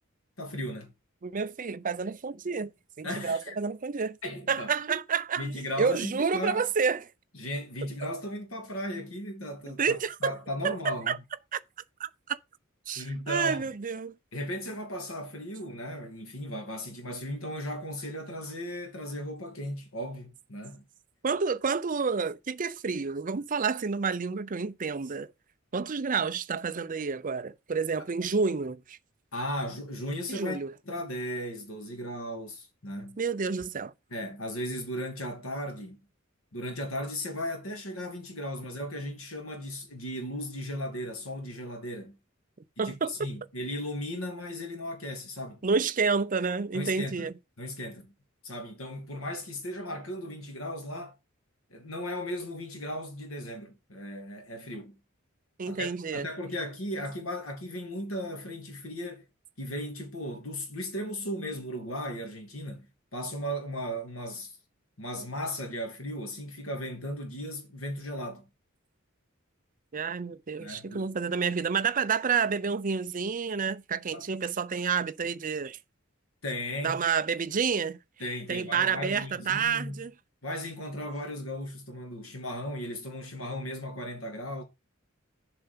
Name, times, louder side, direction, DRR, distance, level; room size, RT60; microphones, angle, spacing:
voice 1, 0.4-0.9 3.0-3.5 4.2-4.7 5.4-6.7 7.4-11.2 12.9-13.7 14.3-20.8 29.3-30.6 30.9-33.2 34.1-36.0 36.5-42.2 42.8-45.6 46.7-47.3 47.6-48.1 48.4-51.1 51.7-55.0 55.6-59.3 59.6-62.9 63.1-64.5 65.0-68.5 70.6-71.1 74.1-74.3 76.4-77.1 78.2-80.0 80.4-84.6, equal, 85° left, 2.7 m, -36 dB
voice 2, 1.2-2.7 3.0-4.2 4.5-7.0 9.8-10.4 10.6-11.2 11.5-11.6 12.0-12.4 12.9-14.1 21.2-25.3 25.7-29.0 30.3-30.7 33.2-33.9 42.8-43.1 45.6-47.3 55.6-56.3 69.9-75.8 76.8-78.0 78.5-80.1, right 5 dB, 40° right, 0.6 m, -29 dB
7.0 x 5.6 x 5.3 m
head